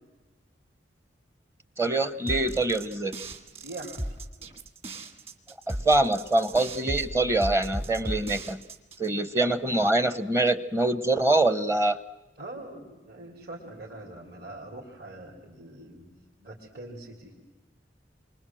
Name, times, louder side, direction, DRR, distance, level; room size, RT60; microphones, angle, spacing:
voice 1, 1.8-3.2 5.7-8.6 9.0-12.0, right 2 dB, 15° right, 14 dB, 0.8 m, -24 dB
sound 1, 2.3-9.1, right 1 dB, 30° right, 1.9 m, -36 dB
voice 2, 3.5-4.0 12.4-17.3, right 2 dB, 55° right, -3 dB, 3.8 m, -43 dB
29.0 x 24.5 x 7.6 m, 1.2 s
head